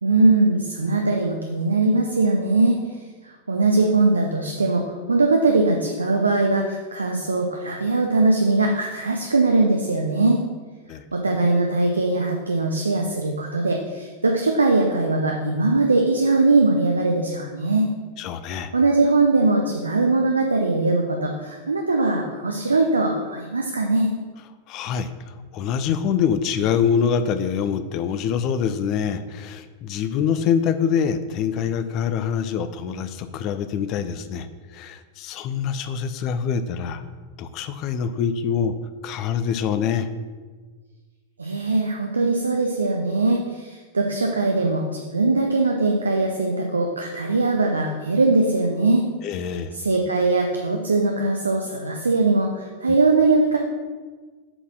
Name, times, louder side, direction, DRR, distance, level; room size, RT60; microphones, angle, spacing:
voice 1, 0.0-2.8 3.2-10.4 11.1-17.9 18.7-24.1 41.4-49.0 49.8-53.6, right 3 dB, 75° right, 2 dB, 0.6 m, -21 dB
voice 2, 18.2-18.7 24.7-37.0 37.4-38.8 39.0-40.1 49.2-49.8, left 7 dB, 40° left, 11 dB, 0.5 m, -25 dB
7.9 x 4.1 x 6.0 m, 1.4 s
figure-of-eight pair, 90°, 0 cm